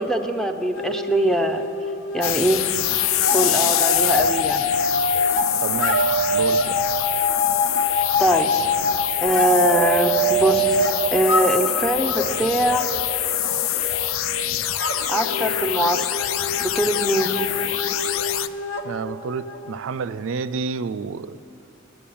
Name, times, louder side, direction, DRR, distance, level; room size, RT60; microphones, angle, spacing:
voice 1, 0.0-1.6 2.1-2.6 3.3-4.6 8.2-8.5 9.2-12.9 15.1-16.3 16.6-17.3, right 1 dB, ahead, 0.4 m, -22 dB
sound 1, 0.7-2.4 2.6-19.7, left 1 dB, 65° left, 0.9 m, -25 dB
sound 2, 2.2-18.5, left 12 dB, 80° left, 0.4 m, -25 dB
voice 2, 5.6-6.8 18.8-21.4, right 5 dB, 75° right, 0.4 m, -29 dB
10.0 x 7.8 x 8.5 m
head